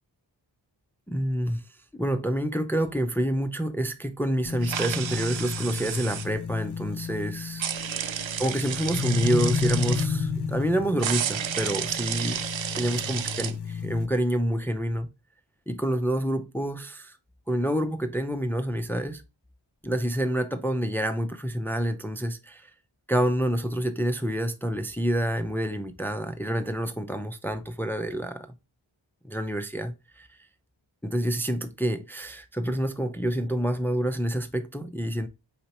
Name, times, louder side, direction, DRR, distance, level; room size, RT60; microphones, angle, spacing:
voice 1, 1.1-1.6 1.9-7.7 8.4-12.4 12.7-15.1 15.7-17.2 17.5-19.2 19.8-22.7 23.1-28.5 29.2-30.3 31.0-35.3, right 1 dB, 5° left, 0.4 m, -28 dB
sound 1, 4.5-14.1, left 5 dB, 60° left, 0.6 m, -32 dB
sound 2, 4.6-6.3 7.6-10.1 11.0-13.5, right 9 dB, 85° right, 0.5 m, -31 dB
4.3 x 4.0 x 2.8 m
wide cardioid pair, 80°, 45 cm